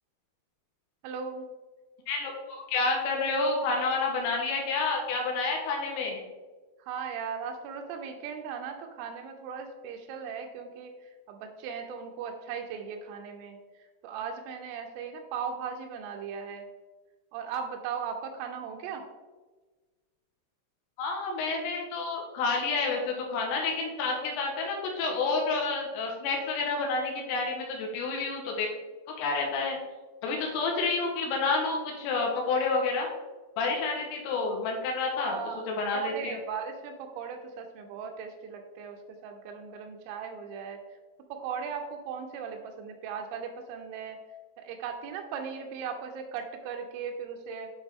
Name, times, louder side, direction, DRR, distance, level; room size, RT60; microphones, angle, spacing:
voice 1, 1.0-1.5 6.8-10.9 11.3-13.6 14.0-16.7 17.3-19.0 35.2-35.6 35.9-40.8 41.3-44.2 44.6-47.7, right 6 dB, 80° right, 5 dB, 3.0 m, -37 dB
voice 2, 2.1-6.2 21.0-28.7 29.2-29.8 30.2-33.1 33.6-35.4 35.7-36.4, left 3 dB, 80° left, 0 dB, 3.5 m, -29 dB
10.0 x 3.9 x 3.5 m, 1.3 s
omnidirectional pair, 6.0 m